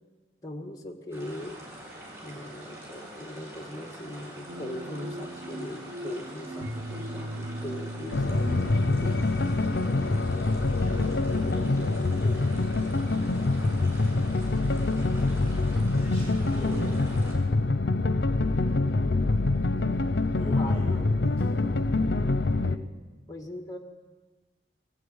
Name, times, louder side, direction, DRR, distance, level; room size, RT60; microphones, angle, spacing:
voice 1, 0.4-1.6 2.2-10.1 11.1-12.6 19.6-20.1 20.5-21.1 22.6-22.9 23.3-23.8, left 1 dB, 20° left, 3 dB, 1.7 m, -41 dB
sound 1, 1.1-17.3, right 1 dB, 15° right, 6.9 m, -45 dB
sound 2, 4.5-12.6, right 1 dB, 85° right, 2.1 m, -39 dB
sound 3, 8.1-22.8, left 2 dB, 75° left, 0.7 m, -25 dB
voice 2, 16.0-17.2 20.2-21.8, equal, 35° left, -1 dB, 5.2 m, -42 dB
23.5 x 14.5 x 9.0 m, 1.3 s
head